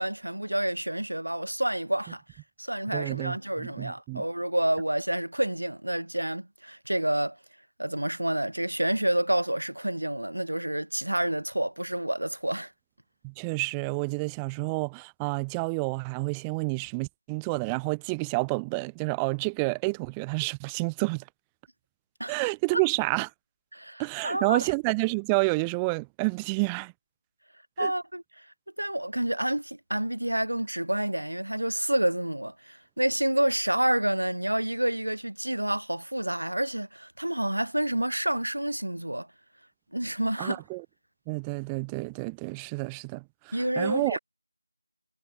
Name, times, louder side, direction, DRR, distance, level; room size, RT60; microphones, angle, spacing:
voice 1, 0.0-2.2 2.6-7.4 7.8-12.7 22.2-22.8 23.7-24.7 27.8-28.4 28.8-39.3 39.9-40.6 43.5-44.2, right 1 dB, 75° right, 5.8 m, -29 dB
voice 2, 2.9-4.2 13.2-21.2 22.3-23.3 24.0-26.9 27.8-27.9 40.4-40.8 41.3-44.2, right 31 dB, 10° right, 1.4 m, -29 dB
figure-of-eight pair, 170°, 0 cm